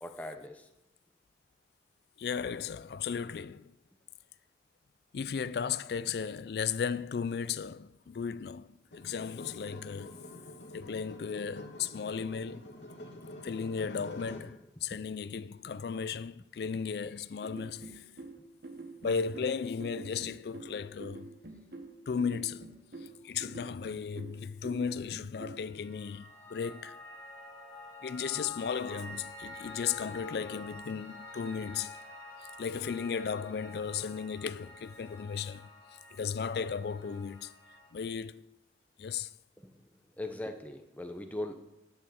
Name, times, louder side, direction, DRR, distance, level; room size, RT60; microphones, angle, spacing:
voice 1, 0.0-0.7 14.9-15.2 39.6-39.7 40.2-41.5, left 1 dB, 10° left, 0.8 m, -40 dB
voice 2, 2.2-3.8 5.1-10.2 10.7-12.7 13.4-18.0 19.0-21.3 22.1-22.7 23.2-27.0 28.0-32.0 32.4-35.7 36.2-37.5 37.9-38.6 39.0-39.3, left 6 dB, 65° left, 0.4 m, -35 dB
sound 1, 8.9-14.6, left 1 dB, 85° left, 1.6 m, -47 dB
sound 2, 17.4-25.6, right 3 dB, 70° right, 1.3 m, -47 dB
Piano, 25.5-37.9, left 2 dB, 25° left, 2.6 m, -48 dB
10.5 x 6.3 x 7.0 m
head